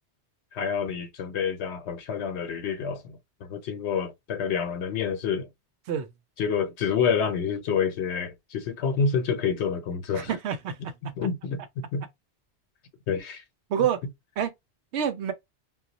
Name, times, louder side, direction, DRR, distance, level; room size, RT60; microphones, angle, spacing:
voice 1, 0.5-5.5 6.4-10.3 11.0-11.6 11.9-12.1 13.1-13.4, left 6 dB, 80° left, 0.9 m, -28 dB
voice 2, 10.1-10.9 13.7-14.0 14.4-14.5 14.9-15.3, right 9 dB, 80° right, 0.9 m, -27 dB
2.4 x 2.2 x 3.8 m
omnidirectional pair, 1.1 m